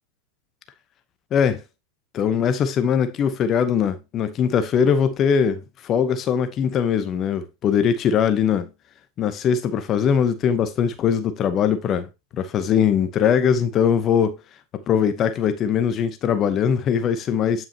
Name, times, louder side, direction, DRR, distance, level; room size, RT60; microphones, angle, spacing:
voice 1, 1.3-1.6 2.1-8.7 9.2-14.4 14.7-17.7, left 7 dB, 35° left, 0.9 m, -21 dB
9.2 x 5.6 x 2.8 m
hypercardioid pair, 105°, 0 cm